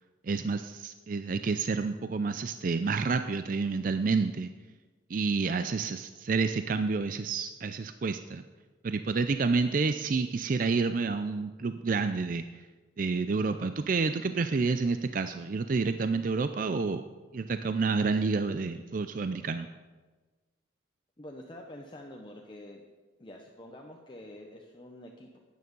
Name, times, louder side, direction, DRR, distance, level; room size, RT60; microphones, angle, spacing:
voice 1, 0.2-4.5 5.1-8.4 8.8-12.6 13.0-17.0 17.3-19.7, right 4 dB, 45° right, 9 dB, 0.4 m, -29 dB
voice 2, 21.2-22.8 23.2-25.4, left 1 dB, 25° left, 1 dB, 0.8 m, -47 dB
12.5 x 9.3 x 5.3 m, 1.3 s
head